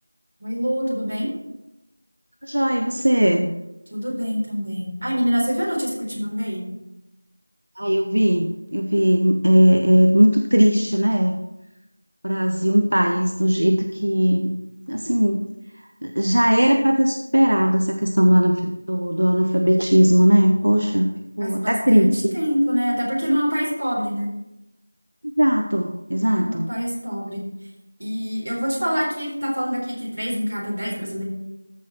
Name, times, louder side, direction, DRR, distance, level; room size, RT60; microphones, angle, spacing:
voice 1, 0.4-1.3 3.9-6.7 21.4-24.3 26.4-27.4 28.0-31.2, equal, 45° right, -3 dB, 3.9 m, -25 dB
voice 2, 2.4-3.5 7.8-11.4 12.2-14.6 14.9-15.5 16.0-21.1 21.4-22.3 25.4-26.7, equal, 80° right, 5 dB, 0.9 m, -18 dB
14.0 x 5.7 x 4.4 m, 0.92 s
figure-of-eight pair, 175°, 0 cm